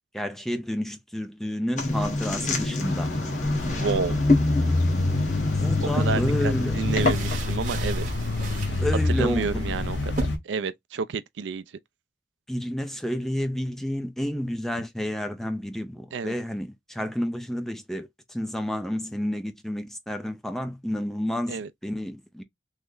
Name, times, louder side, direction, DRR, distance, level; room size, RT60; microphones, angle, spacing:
voice 1, 0.1-3.1 5.6-6.7 8.8-9.7 12.5-22.4, equal, ahead, 0.3 m, -30 dB
sound 1, 1.8-7.5, left 2 dB, 40° left, 0.9 m, -27 dB
sound 2, 2.8-10.4, left 2 dB, 75° left, 0.8 m, -27 dB
sound 3, 3.4-10.2, right 2 dB, 45° right, 0.8 m, -37 dB
voice 2, 3.7-4.2 5.8-8.1 9.1-11.6 16.1-16.3 21.5-21.7, right 5 dB, 80° right, 0.4 m, -30 dB
3.2 x 2.0 x 3.7 m
head